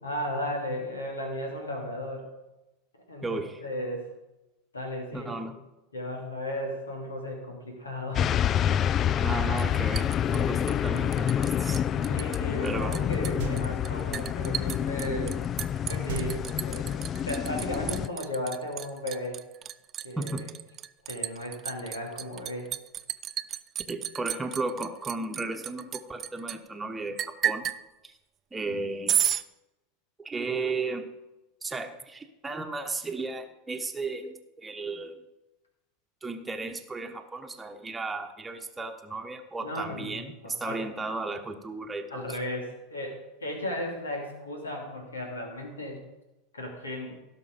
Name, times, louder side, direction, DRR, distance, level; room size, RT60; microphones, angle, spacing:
voice 1, 0.0-2.3 3.1-4.1 4.7-5.3 5.9-8.3 11.9-15.4 15.9-16.9 17.2-19.4 20.0-20.4 21.1-22.7 39.6-40.8 42.1-46.0 46.5-47.1, left 1 dB, 80° left, 1 dB, 2.7 m, -35 dB
voice 2, 3.2-3.6 5.1-5.5 9.2-11.8 12.6-12.9 20.2-20.5 23.9-27.7 28.0-28.1 28.5-29.2 30.2-31.1 31.6-35.2 36.2-42.4, right 3 dB, 15° right, 4 dB, 1.2 m, -34 dB
sound 1, 8.1-18.1, left 9 dB, 35° left, 0.3 m, -28 dB
Liquid, 9.6-11.5 11.7-12.4 12.7-26.6 27.2-27.8 29.1-29.4, right 10 dB, 35° right, 0.5 m, -33 dB
sound 2, 13.4-14.0 16.1-17.1, right 11 dB, 55° right, 0.9 m, -38 dB
16.5 x 6.1 x 5.1 m, 1.0 s
figure-of-eight pair, 85°, 0 cm